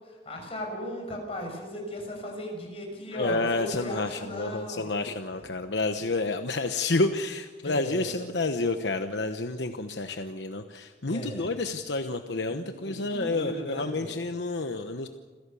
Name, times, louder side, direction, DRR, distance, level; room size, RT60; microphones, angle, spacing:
voice 1, 0.2-4.8 7.6-8.1 11.1-11.5 12.5-14.1, equal, 35° left, 1 dB, 6.5 m, -36 dB
voice 2, 3.1-15.1, left 3 dB, 75° left, 7 dB, 1.0 m, -29 dB
28.0 x 16.0 x 7.0 m, 1.4 s
head